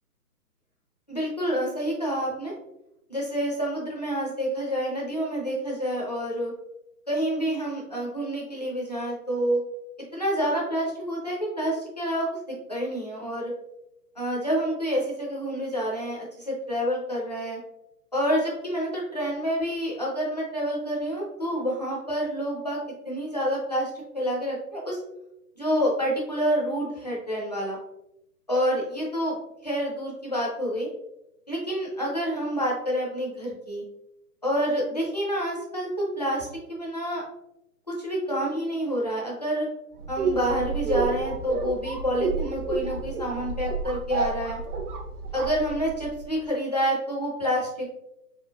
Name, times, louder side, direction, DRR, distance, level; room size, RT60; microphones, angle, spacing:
voice 1, 1.1-2.5 3.1-6.5 7.1-9.6 10.1-13.5 14.2-17.6 18.1-25.0 25.6-27.8 28.5-29.3 29.6-30.9 31.5-33.8 34.4-35.9 36.2-36.5 36.8-37.2 38.0-39.7 40.1-44.6 45.3-47.9, equal, 30° left, -3 dB, 0.5 m, -28 dB
sound 1, 40.0-46.2, right 3 dB, 70° right, 0.9 m, -30 dB
3.7 x 3.0 x 2.3 m, 0.84 s
hypercardioid pair, 170°, 47 cm